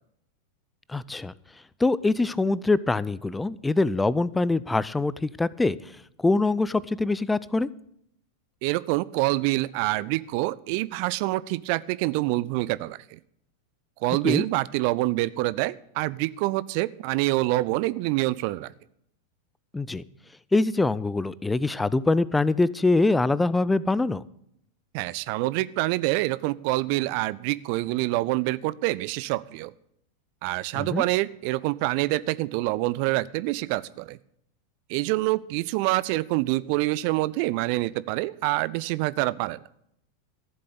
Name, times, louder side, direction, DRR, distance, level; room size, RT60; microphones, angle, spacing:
voice 1, 0.9-1.3 1.8-5.8 6.2-7.7 14.2-14.5 19.7-20.0 20.5-24.2 30.7-31.0, left 3 dB, 10° left, 19 dB, 0.4 m, -24 dB
voice 2, 8.6-13.2 14.0-18.7 24.9-29.7 30.4-34.2 34.9-39.6, right 19 dB, 45° right, 19 dB, 0.4 m, -26 dB
14.0 x 7.6 x 8.5 m, 0.72 s
figure-of-eight pair, 90°, 0 cm